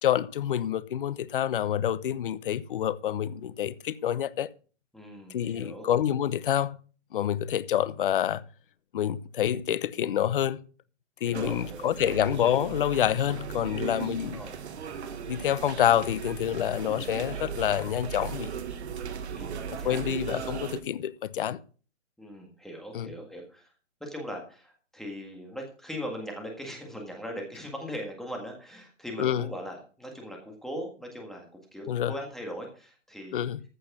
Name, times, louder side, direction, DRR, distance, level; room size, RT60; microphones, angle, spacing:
voice 1, 0.0-4.5 5.3-6.8 7.1-8.4 8.9-10.6 11.2-14.4 15.3-18.5 19.7-21.6 22.9-23.1 29.2-29.4 31.9-32.1 33.3-33.6, left 10 dB, 45° left, 0.8 m, -27 dB
voice 2, 4.9-5.9 11.2-12.2 13.7-13.9 14.3-14.6 19.0-20.2 22.2-23.7 24.0-33.5, equal, ahead, 1.7 m, -40 dB
sound 1, 11.3-20.8, right 7 dB, 55° right, 1.6 m, -37 dB
14.5 x 6.3 x 6.1 m
hypercardioid pair, 165°, 38 cm